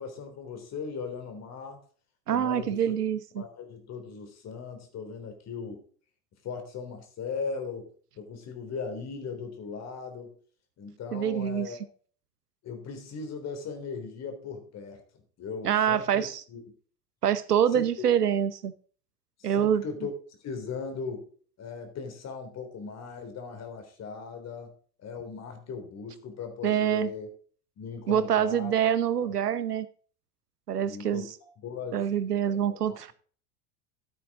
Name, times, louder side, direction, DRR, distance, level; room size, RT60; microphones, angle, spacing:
voice 1, 0.0-1.8 2.3-2.9 3.4-5.8 6.4-10.3 10.8-11.9 12.6-15.0 15.4-16.6 17.7-18.1 19.4-20.1 20.4-21.3 21.6-24.7 25.0-27.3 27.8-28.7 29.2-29.4 30.8-32.0 32.4-33.1, left 5 dB, 35° left, 6 dB, 3.5 m, -38 dB
voice 2, 2.3-3.4 11.1-11.7 15.6-16.4 17.2-18.7 19.4-19.8 26.6-27.1 28.1-29.9 30.7-31.2 31.9-33.1, right 9 dB, 75° right, 15 dB, 1.0 m, -25 dB
13.5 x 8.5 x 3.7 m, 0.43 s
figure-of-eight pair, 80°, 47 cm